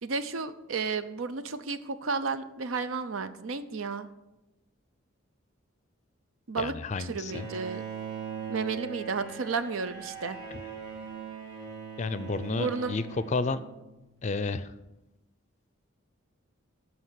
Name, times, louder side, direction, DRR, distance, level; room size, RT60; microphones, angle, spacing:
voice 1, 0.0-4.1 6.5-6.7 7.0-7.8 8.5-10.4 12.5-13.0, right 4 dB, 85° right, 12 dB, 0.6 m, -32 dB
voice 2, 6.6-7.5 10.5-10.6 12.0-13.6 14.2-14.7, left 3 dB, 35° left, 14 dB, 0.4 m, -31 dB
Bowed string instrument, 7.3-14.1, right 6 dB, 55° right, 3.6 m, -40 dB
12.5 x 4.7 x 6.3 m, 1.0 s
head